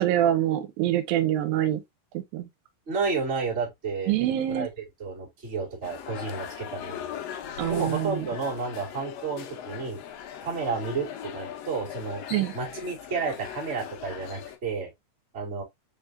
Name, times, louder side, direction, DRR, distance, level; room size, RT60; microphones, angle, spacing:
voice 1, 0.0-1.8 2.1-2.5 4.1-4.7 7.6-8.3 12.3-12.5, right 12 dB, 85° right, 2.4 m, -25 dB
voice 2, 2.9-4.1 4.5-4.7 5.0-7.2 7.7-10.0 10.4-12.2 12.5-14.9 15.3-15.6, right 4 dB, 25° right, 1.6 m, -31 dB
sound 1, 5.8-14.6, left 9 dB, 90° left, 1.4 m, -39 dB
5.0 x 3.6 x 2.5 m
omnidirectional pair, 4.0 m